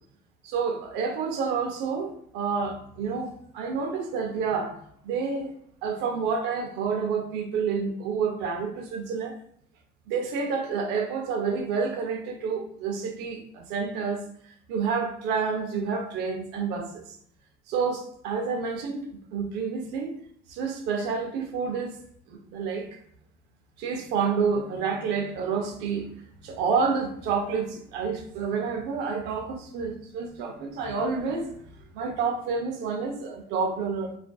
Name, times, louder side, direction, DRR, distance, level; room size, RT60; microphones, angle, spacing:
voice 1, 0.4-4.8 5.0-5.5 5.8-9.4 10.1-14.2 14.7-17.2 17.7-20.1 20.5-22.0 22.3-23.0 23.8-26.1 26.4-31.5 31.9-34.2, right 5 dB, 85° right, 4 dB, 0.6 m, -29 dB
2.4 x 2.4 x 2.2 m, 0.66 s
cardioid pair, 145°, 17 cm